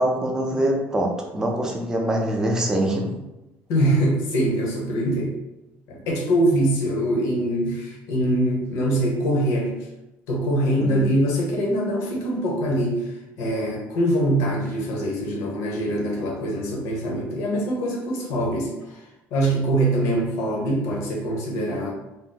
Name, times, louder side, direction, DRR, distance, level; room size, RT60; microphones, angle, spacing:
voice 1, 0.0-3.1 10.8-11.1, right 1 dB, 10° right, 0 dB, 0.5 m, -24 dB
voice 2, 3.7-5.4 5.9-9.7 10.3-13.1 13.4-19.0 19.3-21.9, right 1 dB, 70° left, -1 dB, 0.9 m, -23 dB
2.6 x 2.0 x 3.9 m, 0.96 s
cardioid pair, 150°, 5 cm